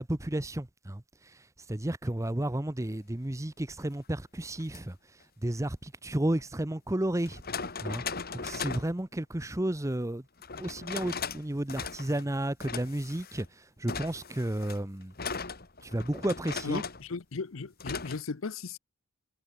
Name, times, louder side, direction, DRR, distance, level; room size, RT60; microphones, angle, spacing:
voice 1, 0.0-1.4 1.7-5.0 5.4-7.4 7.8-8.0 8.3-10.2 10.6-15.1 15.8-16.8, right 1 dB, 15° right, 0.8 m, -32 dB
sound 1, 4.6-4.8 6.4-6.5 7.2-8.9 10.4-11.4 11.7-12.3 12.6-13.5 13.9-17.1 17.8-18.2, left 5 dB, 45° left, 2.7 m, -38 dB
voice 2, 16.6-18.8, left 4 dB, 65° left, 0.7 m, -36 dB
head